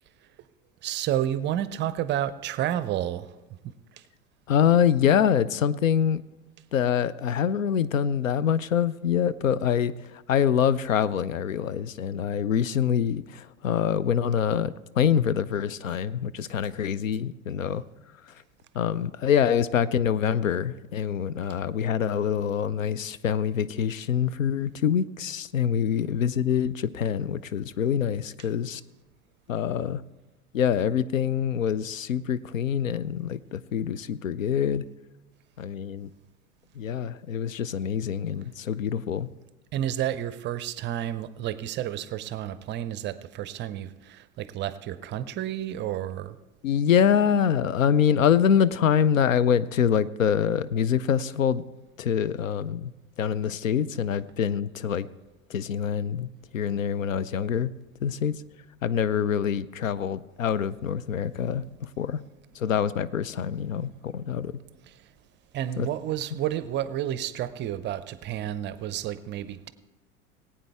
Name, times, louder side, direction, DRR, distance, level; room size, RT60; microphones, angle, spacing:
voice 1, 0.8-3.3 3.6-3.7 39.7-46.4 64.9-65.1 65.5-69.7, right 11 dB, 30° right, 0.6 m, -30 dB
voice 2, 4.5-6.2 6.7-17.8 18.7-28.8 29.5-30.0 30.5-34.8 35.6-36.1 36.8-39.3 46.6-51.6 52.0-52.9 53.2-55.1 55.5-56.3 56.5-57.7 58.0-58.4 58.8-61.6 62.0-62.2 62.6-64.5 65.8-65.9, left 8 dB, 80° left, 0.6 m, -25 dB
19.5 x 8.8 x 3.5 m
figure-of-eight pair, 80°, 39 cm